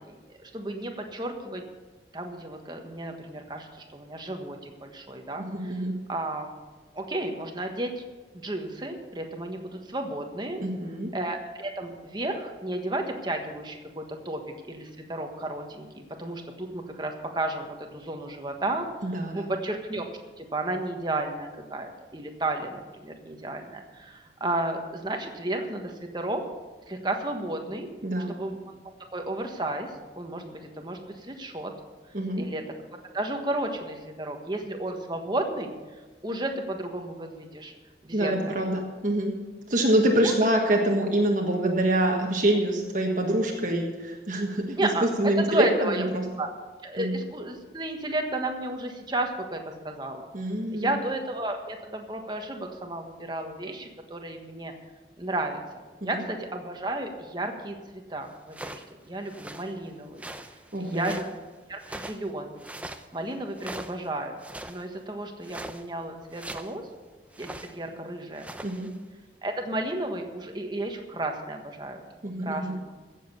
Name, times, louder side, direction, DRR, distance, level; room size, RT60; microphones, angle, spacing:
voice 1, 0.0-1.6 2.1-5.8 6.1-6.5 6.9-8.0 8.3-10.6 11.1-18.9 19.3-20.0 20.4-26.4 26.9-27.9 28.3-28.6 29.1-31.7 32.4-32.6 33.1-35.7 36.2-37.7 38.0-38.6 40.2-40.3 44.8-45.0 45.4-46.0 46.4-46.5 46.8-50.2 50.7-54.7 55.2-55.6 56.0-60.3 60.8-61.4 61.7-62.6 63.1-64.3 64.7-66.8 67.4-68.5 69.4-72.0 72.4-73.0, right 2 dB, 25° right, 4 dB, 1.4 m, -33 dB
voice 2, 5.4-5.9 10.6-11.1 19.0-19.5 28.0-28.4 32.1-32.4 38.1-39.3 39.7-46.2 47.0-47.2 50.3-51.0 56.0-56.2 60.7-61.1 68.6-68.9 72.2-72.7, right 1 dB, 45° right, 1 dB, 1.4 m, -26 dB
sound 1, 58.5-58.9 59.3-59.7 60.2-61.4 61.8-62.3 62.6-63.1 63.6-64.1 64.4-64.8 65.4-65.8 66.3-66.7 67.3-67.8 68.3-68.9, right 1 dB, 10° right, 0.6 m, -41 dB
15.5 x 7.5 x 6.9 m, 1.3 s
head